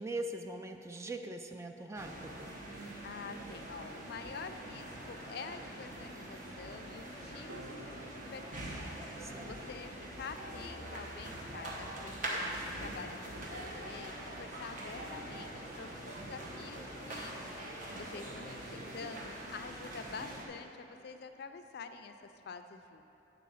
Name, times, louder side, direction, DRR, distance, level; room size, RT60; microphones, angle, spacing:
voice 1, 0.0-2.5 9.2-9.5, right 2 dB, 15° right, 6 dB, 0.3 m, -41 dB
sound 1, 2.0-20.5, right 1 dB, 45° right, 1.1 m, -43 dB
voice 2, 3.0-8.7 9.1-17.3 18.0-22.1 22.5-23.1, left 5 dB, 60° left, 8 dB, 0.4 m, -47 dB
Piano, 7.5-13.9, right 2 dB, 90° right, 0.6 m, -59 dB
8.4 x 4.0 x 7.0 m, 2.9 s
head